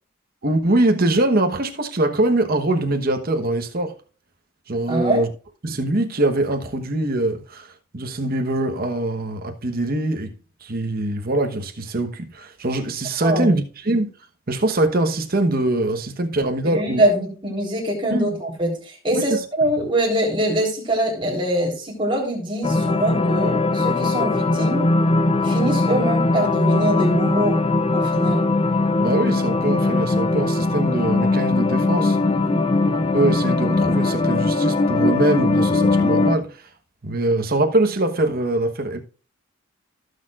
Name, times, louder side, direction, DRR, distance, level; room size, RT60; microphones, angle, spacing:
voice 1, 0.4-4.0 4.7-5.3 5.6-14.1 14.5-17.0 18.1-18.3 19.1-19.4 19.7-19.8 29.0-32.2 32.9-36.7 37.0-39.0, right 2 dB, 45° right, 1.1 m, -23 dB
voice 2, 4.9-5.2 13.2-13.5 16.6-24.9 25.4-27.6 27.9-28.5 32.4-32.7, right 1 dB, 25° right, 3.8 m, -23 dB
sound 1, 22.6-36.4, left 2 dB, 30° left, 0.5 m, -20 dB
16.5 x 6.7 x 2.4 m
head